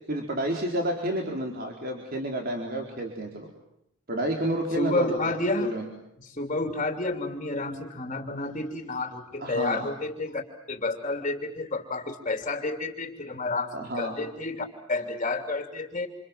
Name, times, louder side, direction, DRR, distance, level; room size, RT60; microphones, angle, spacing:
voice 1, 0.1-3.5 4.1-5.9 9.4-9.9 13.7-14.2, right 1 dB, 45° right, 1 dB, 4.3 m, -30 dB
voice 2, 4.7-5.7 6.2-10.4 10.7-16.1, left 2 dB, 30° left, 6 dB, 3.1 m, -30 dB
29.0 x 28.0 x 7.4 m, 0.80 s
head